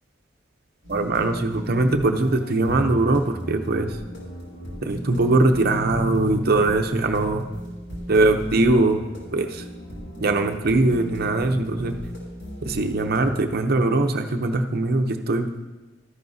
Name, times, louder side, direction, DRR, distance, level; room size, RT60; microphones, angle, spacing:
sound 1, 0.8-13.5, equal, 65° left, 3.1 m, -37 dB
voice 1, 0.9-4.0 4.8-7.4 8.1-9.0 9.3-9.6 10.2-12.0 12.6-15.5, right 2 dB, 55° right, 6 dB, 0.7 m, -21 dB
13.0 x 10.5 x 2.7 m, 1.1 s
head